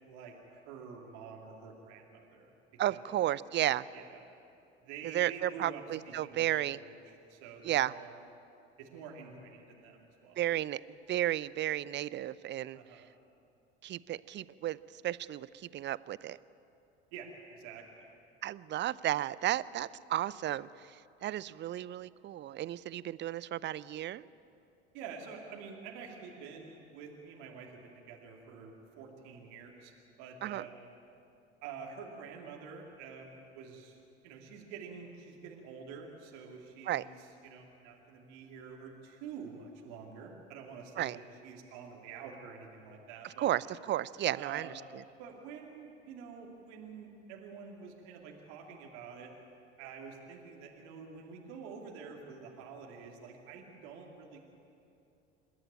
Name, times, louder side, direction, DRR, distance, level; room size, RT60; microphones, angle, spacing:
voice 1, 0.0-2.5 2.9-3.1 3.9-4.2 4.8-8.2 8.8-10.4 12.7-13.1 14.1-14.2 17.1-18.1 24.9-29.9 30.2-30.8 31.6-34.0 34.2-43.5 44.3-44.8 45.2-49.3 49.7-54.4, right 6 dB, 60° right, 0 dB, 2.8 m, -48 dB
voice 2, 2.8-3.9 5.1-6.8 7.6-7.9 10.4-10.8 11.1-12.8 13.8-14.8 15.0-16.4 18.4-24.2 30.4-30.6 36.9-37.0 41.0-41.2 43.4-44.7, right 13 dB, 35° right, 20 dB, 0.6 m, -33 dB
27.0 x 13.0 x 9.0 m, 2.7 s
figure-of-eight pair, 65°, 33 cm